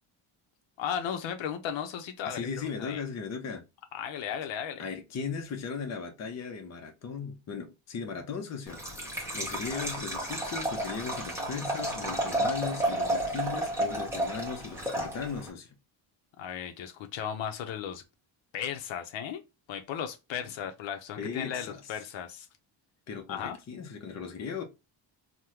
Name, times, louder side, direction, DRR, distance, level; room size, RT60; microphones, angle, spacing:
voice 1, 0.8-3.0 3.9-4.8 9.6-9.9 16.4-18.0 18.5-19.4 19.7-22.5 23.3-23.6, left 8 dB, 75° left, 0.7 m, -36 dB
voice 2, 2.2-3.6 4.8-8.8 9.3-15.7 21.2-21.9 23.1-24.6, left 5 dB, 35° left, 0.6 m, -37 dB
Liquid, 8.7-15.5, right 1 dB, 5° right, 0.9 m, -32 dB
3.5 x 2.1 x 2.9 m
cardioid pair, 135°, 46 cm